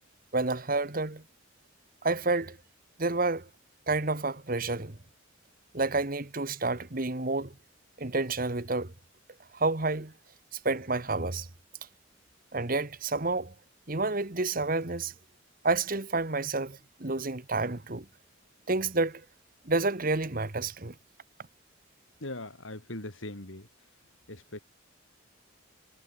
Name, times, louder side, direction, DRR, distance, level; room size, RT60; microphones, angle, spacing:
voice 1, 0.3-1.2 2.0-2.6 3.0-3.5 3.9-5.0 5.7-7.5 8.0-8.9 9.5-10.1 10.5-11.5 12.5-13.5 13.9-15.1 15.6-18.0 18.7-19.2 19.6-20.9, right 3 dB, 45° right, 1.6 m, -29 dB
voice 2, 22.2-23.7 24.3-24.6, left 1 dB, 80° left, 4.5 m, -40 dB
head